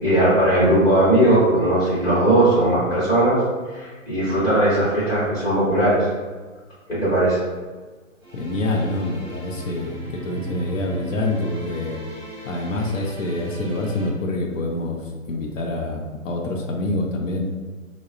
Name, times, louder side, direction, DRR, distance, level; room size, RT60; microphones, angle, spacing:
voice 1, 0.0-3.4 3.7-6.1 6.9-7.4, right 1 dB, 5° left, -13 dB, 0.8 m, -18 dB
sound 1, 8.2-14.1, right 1 dB, 20° right, 0.4 m, -39 dB
voice 2, 8.3-12.0 12.4-17.5, left 2 dB, 70° left, 0 dB, 0.6 m, -26 dB
2.9 x 2.0 x 2.4 m, 1.4 s
hypercardioid pair, 150°, 41 cm